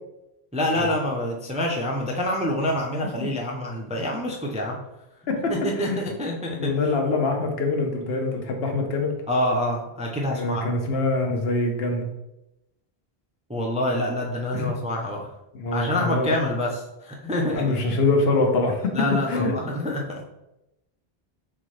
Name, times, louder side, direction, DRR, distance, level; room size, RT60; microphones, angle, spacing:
voice 1, 0.5-4.8 5.5-6.9 9.3-10.7 13.5-15.3 15.7-18.0 18.9-20.2, left 1 dB, 10° right, -1 dB, 0.4 m, -27 dB
voice 2, 6.6-9.2 10.3-12.1 14.5-14.7 15.5-16.3 17.5-18.9 19.3-19.5, left 3 dB, 70° left, 3 dB, 1.0 m, -24 dB
4.3 x 3.6 x 3.2 m, 0.90 s
omnidirectional pair, 1.1 m